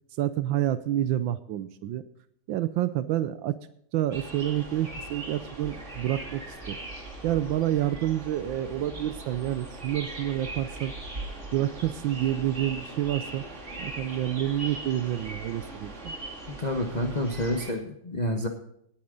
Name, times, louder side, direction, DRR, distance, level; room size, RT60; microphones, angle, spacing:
voice 1, 0.2-2.0 2.5-3.6 3.9-6.8 7.2-10.9 11.5-13.5 13.8-16.1, right 12 dB, 85° right, 13 dB, 1.4 m, -28 dB
sound 1, 4.1-17.7, right 2 dB, 40° right, 2.8 m, -40 dB
voice 2, 16.6-18.5, left 1 dB, 25° left, 3 dB, 1.1 m, -28 dB
18.5 x 8.7 x 3.8 m, 0.74 s
omnidirectional pair, 2.1 m